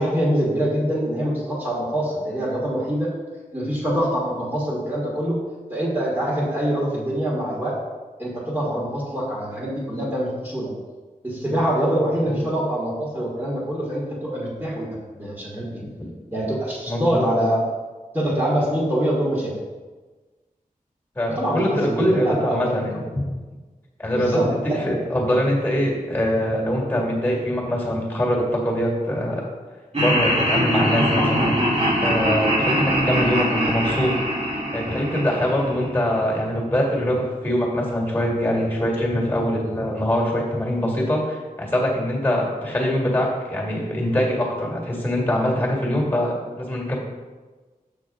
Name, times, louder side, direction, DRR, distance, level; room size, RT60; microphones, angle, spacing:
voice 1, 0.0-3.1 3.5-5.4 5.7-7.8 8.2-10.7 11.2-15.8 16.3-17.6 18.1-19.5 21.4-22.8 24.1-24.9, right 1 dB, 15° right, -7 dB, 1.7 m, -24 dB
voice 2, 16.8-17.3 21.2-23.0 24.0-29.5 29.9-31.7 32.0-34.1 34.4-47.0, equal, 15° left, -2 dB, 2.0 m, -23 dB
Laughter, 29.9-36.1, equal, 45° right, 1.7 m, -22 dB
6.7 x 6.1 x 3.7 m, 1.3 s
wide cardioid pair, 90°, 15 cm